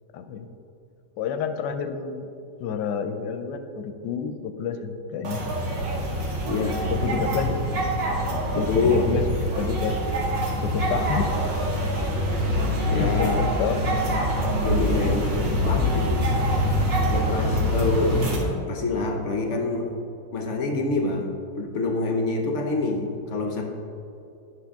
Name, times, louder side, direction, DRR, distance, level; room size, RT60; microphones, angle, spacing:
voice 1, 0.1-0.5 1.2-2.2 2.6-5.4 6.9-7.6 8.6-9.2 9.5-10.0 10.6-11.3 13.0-13.9, left 6 dB, 80° left, 8 dB, 1.2 m, -29 dB
sound 1, 5.2-18.4, equal, 80° right, 2.0 m, -25 dB
voice 2, 6.4-6.8 8.5-9.0 11.9-12.1 12.5-13.4 14.6-16.3 17.1-19.9 20.3-23.6, left 3 dB, 60° left, 2 dB, 0.8 m, -27 dB
9.7 x 6.3 x 3.5 m, 2.7 s
omnidirectional pair, 2.0 m